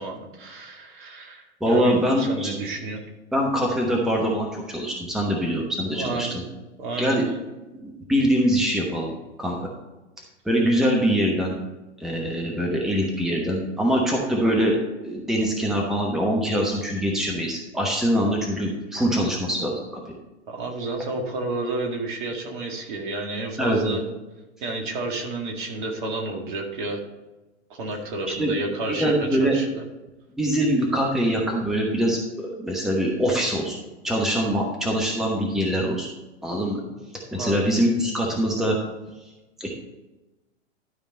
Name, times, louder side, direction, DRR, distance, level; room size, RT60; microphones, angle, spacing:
voice 1, 0.0-3.0 5.9-6.4 6.8-7.4 20.5-24.0 24.6-27.0 27.7-29.7 36.9-37.0 37.3-37.6, right 2 dB, 45° right, 2 dB, 2.0 m, -31 dB
voice 2, 1.6-2.5 3.3-6.4 7.0-7.2 7.8-9.1 9.4-9.7 10.4-11.5 12.0-14.8 15.0-19.7 20.1-20.2 23.6-24.0 28.4-28.5 28.9-29.5 30.3-33.8 34.0-36.1 36.4-36.8 37.3-38.8 39.6-39.7, equal, ahead, -1 dB, 1.1 m, -23 dB
12.0 x 5.2 x 4.2 m, 1.1 s
figure-of-eight pair, 105°, 34 cm